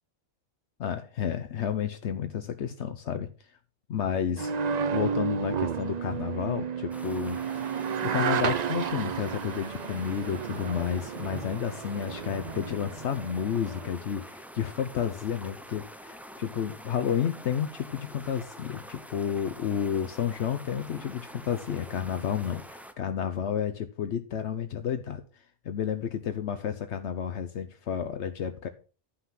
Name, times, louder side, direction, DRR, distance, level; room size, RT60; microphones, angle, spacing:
voice 1, 0.8-3.3 3.9-4.5 4.9-7.4 8.0-28.7, left 8 dB, 70° left, 8 dB, 1.0 m, -31 dB
sound 1, 4.4-13.9, right 6 dB, 45° right, 0.6 m, -32 dB
sound 2, 6.9-22.9, equal, ahead, 0.7 m, -46 dB
11.5 x 5.8 x 5.8 m, 0.37 s
omnidirectional pair, 1.2 m